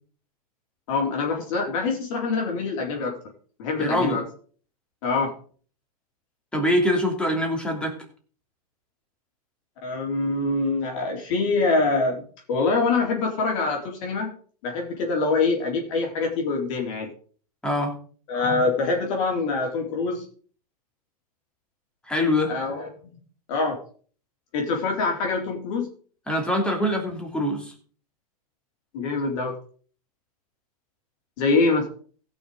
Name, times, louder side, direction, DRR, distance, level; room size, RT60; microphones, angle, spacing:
voice 1, 0.9-3.1 3.6-4.2 5.0-5.3 9.8-12.2 12.5-14.3 14.6-17.1 18.3-20.2 22.5-22.9 23.5-23.8 24.5-25.9 28.9-29.5 31.4-31.9, left 3 dB, 60° left, 1 dB, 3.9 m, -24 dB
voice 2, 3.8-4.2 6.5-8.0 17.6-17.9 22.1-22.5 26.3-27.7, left 1 dB, 5° left, 1 dB, 3.1 m, -24 dB
16.0 x 6.4 x 5.1 m, 0.43 s
supercardioid pair, 135°, 19 cm